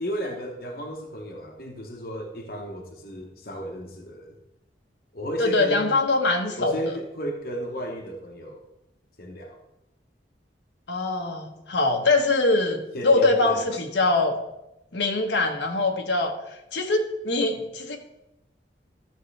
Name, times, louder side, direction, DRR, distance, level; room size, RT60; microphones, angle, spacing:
voice 1, 0.0-4.3 5.1-6.0 6.6-8.6 9.2-9.6 12.9-13.7, right 1 dB, 55° left, 2 dB, 1.1 m, -33 dB
voice 2, 5.4-6.8 10.9-14.4 14.9-16.3 16.7-18.0, left 2 dB, 85° left, 2 dB, 1.3 m, -23 dB
13.5 x 6.9 x 3.3 m, 0.90 s
head